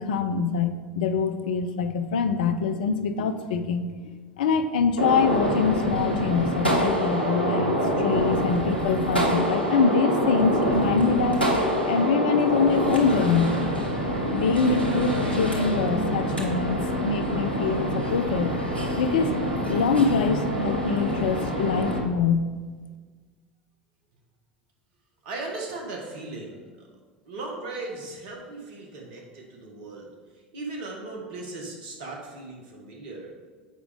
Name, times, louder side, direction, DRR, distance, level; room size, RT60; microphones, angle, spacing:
voice 1, 0.0-3.9 4.4-11.4 11.8-13.5 14.3-18.5 18.9-19.4 19.7-22.4, left 5 dB, 60° left, 10 dB, 0.4 m, -24 dB
Gunshot gunfire, 5.0-22.0, equal, 90° left, 0.9 m, -26 dB
voice 2, 25.2-26.9 27.2-30.1 30.5-33.3, right 2 dB, 55° right, 0 dB, 1.4 m, -37 dB
7.4 x 4.8 x 3.5 m, 1.4 s
figure-of-eight pair, 75°, 5 cm